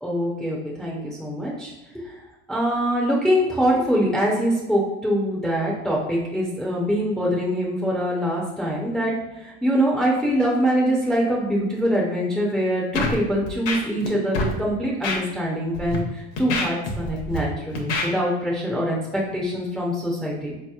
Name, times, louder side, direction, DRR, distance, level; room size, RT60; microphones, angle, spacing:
voice 1, 0.0-1.7 2.0-2.1 2.5-20.5, equal, ahead, -4 dB, 0.5 m, -24 dB
Scratching (performance technique), 12.9-13.2 13.5-14.1 14.3-14.5 15.0-15.2 15.7-16.0 16.4-17.4 17.8-18.1, left 3 dB, 50° left, 0.7 m, -25 dB
3.8 x 2.9 x 2.3 m, 0.98 s
supercardioid pair, 125°, 31 cm